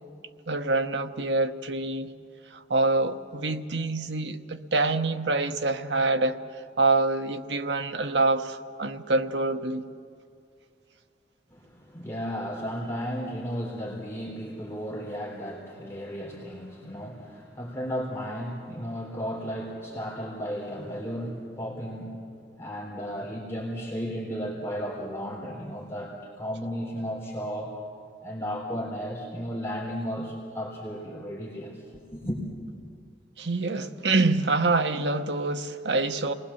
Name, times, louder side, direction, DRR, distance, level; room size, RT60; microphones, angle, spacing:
voice 1, 0.5-2.1 2.5-6.4 6.8-9.8 33.4-36.3, right 3 dB, 85° right, 1.1 m, -26 dB
voice 2, 11.5-22.1 22.6-27.8 28.2-32.4, equal, 15° left, 3.6 m, -34 dB
28.5 x 20.0 x 7.2 m
head